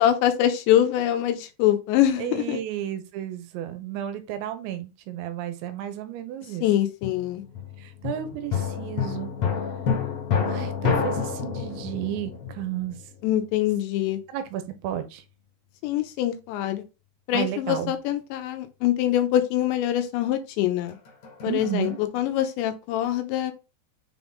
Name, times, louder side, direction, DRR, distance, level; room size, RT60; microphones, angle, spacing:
voice 1, 0.0-2.6 6.6-7.4 13.2-14.2 15.8-16.8 17.3-21.0 21.4-23.5, left 12 dB, 90° left, 3.0 m, -24 dB
voice 2, 2.2-6.7 7.8-9.3 10.4-13.0 14.3-15.2 17.3-17.9 21.4-22.0, right 11 dB, 85° right, 3.1 m, -32 dB
sound 1, 7.0-13.4 20.9-22.0, left 6 dB, 55° left, 2.2 m, -29 dB
6.9 x 3.5 x 3.9 m
omnidirectional pair, 5.2 m